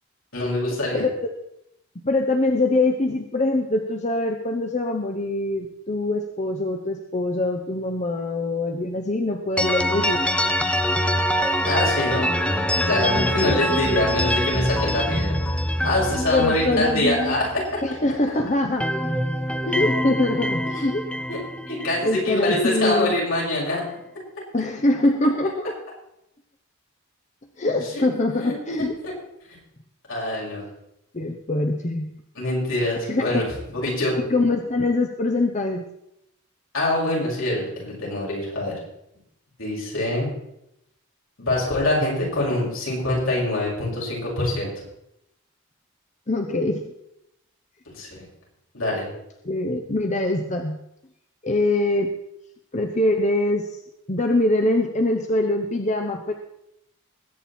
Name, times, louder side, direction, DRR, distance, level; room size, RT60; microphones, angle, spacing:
voice 1, 0.3-1.1 11.7-12.3 12.9-15.3 15.8-17.8 21.3-21.4 21.7-23.8 27.9-28.0 28.4-28.5 29.0-29.1 30.1-30.6 32.3-33.4 33.7-34.2 36.7-38.8 39.6-40.3 41.4-44.9 47.9-48.3 48.7-49.1, left 1 dB, 75° left, -4 dB, 6.6 m, -24 dB
voice 2, 2.0-10.2 16.3-17.4 17.8-18.9 19.6-21.1 22.0-23.1 24.5-25.8 27.6-28.9 31.1-32.2 33.1-33.4 34.3-35.8 46.3-46.8 49.4-50.8 51.4-52.1 52.7-53.8 54.1-56.4, left 2 dB, 35° left, 4 dB, 0.9 m, -23 dB
sound 1, 9.6-18.3 18.6-22.7, equal, 5° left, 0.7 m, -25 dB
21.0 x 8.8 x 4.4 m, 0.81 s
head